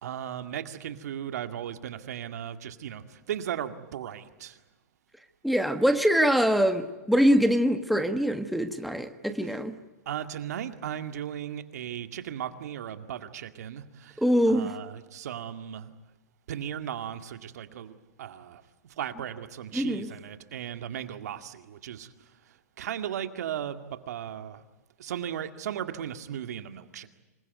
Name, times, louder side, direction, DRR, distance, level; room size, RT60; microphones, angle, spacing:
voice 1, 0.0-4.6 10.1-15.9 16.5-18.6 19.0-22.1 22.8-24.6 25.0-27.1, right 10 dB, 70° right, 2.1 m, -36 dB
voice 2, 5.4-9.7 14.2-14.8 19.7-20.1, equal, ahead, 1.4 m, -24 dB
26.5 x 21.0 x 9.4 m
hypercardioid pair, 135°, 9 cm